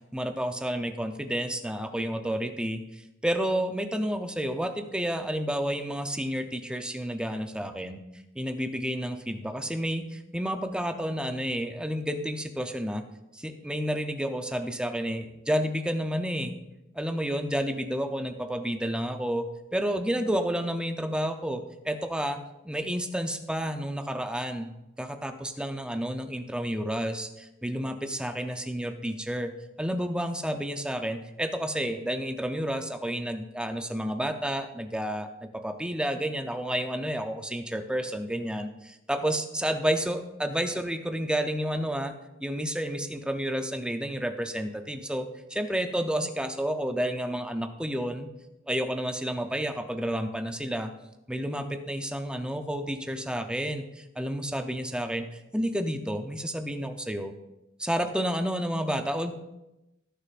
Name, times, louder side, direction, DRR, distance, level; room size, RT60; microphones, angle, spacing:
voice 1, 0.1-8.0 8.4-13.0 13.3-16.5 16.9-19.5 19.7-22.4 22.6-24.7 25.0-29.5 29.8-42.1 42.4-48.3 48.7-50.9 51.3-57.3 57.8-59.3, equal, 5° right, 7 dB, 0.6 m, -30 dB
17.5 x 6.8 x 2.5 m, 0.94 s
head